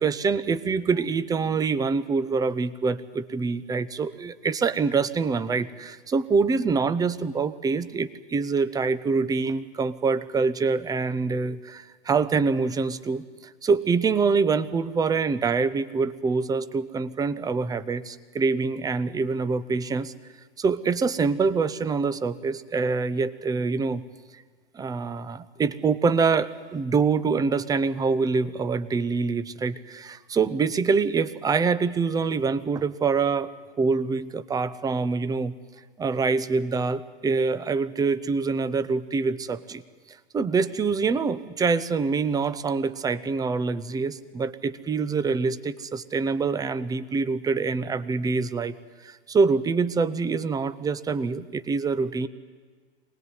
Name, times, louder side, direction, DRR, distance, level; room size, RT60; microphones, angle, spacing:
voice 1, 0.0-20.1 20.6-24.0 24.3-24.4 24.7-33.5 33.8-35.5 36.0-39.8 40.3-48.7 49.0-52.3, right 4 dB, 10° right, 16 dB, 0.7 m, -25 dB
24.0 x 19.0 x 9.8 m, 1.5 s
hypercardioid pair, 120°, 33 cm